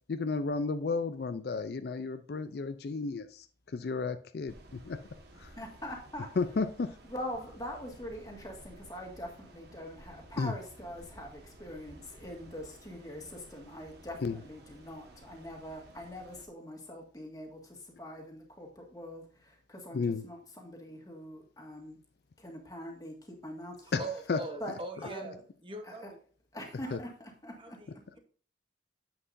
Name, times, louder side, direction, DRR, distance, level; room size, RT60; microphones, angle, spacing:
voice 1, 0.1-5.0 5.4-5.5 6.4-7.0 10.4-10.5 14.2-14.4 19.9-20.2 23.9-24.0 24.3-24.4 26.9-27.0, left 4 dB, 55° left, 10 dB, 0.4 m, -33 dB
sound 1, 4.5-16.5, right 1 dB, 60° right, 1.4 m, -54 dB
voice 2, 5.4-6.4 7.0-22.0 22.4-23.9 24.6-24.7 25.0-25.4 25.8-26.1 26.5-28.0, equal, 20° left, 2 dB, 1.8 m, -43 dB
voice 3, 23.8-26.2 26.8-27.0 27.5-28.2, right 2 dB, 25° right, 4 dB, 1.0 m, -42 dB
9.8 x 7.9 x 2.6 m, 0.42 s
head